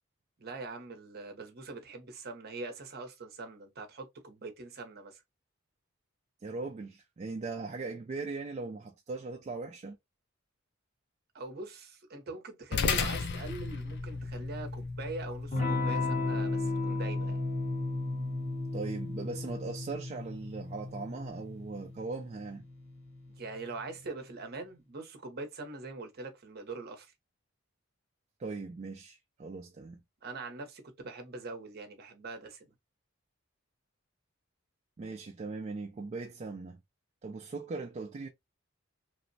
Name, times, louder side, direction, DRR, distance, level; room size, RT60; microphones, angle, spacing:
voice 1, 0.4-5.2 11.3-17.4 23.4-27.1 30.2-32.7, right 3 dB, 50° right, 0.7 m, -43 dB
voice 2, 6.4-10.0 18.7-22.6 28.4-30.0 35.0-36.8 37.2-38.3, right 3 dB, 35° right, 0.3 m, -39 dB
sound 1, 12.7-21.4, left 5 dB, 55° left, 0.4 m, -38 dB
Electric guitar / Strum, 15.5-23.8, left 2 dB, 35° left, 1.0 m, -34 dB
3.0 x 2.0 x 2.6 m
head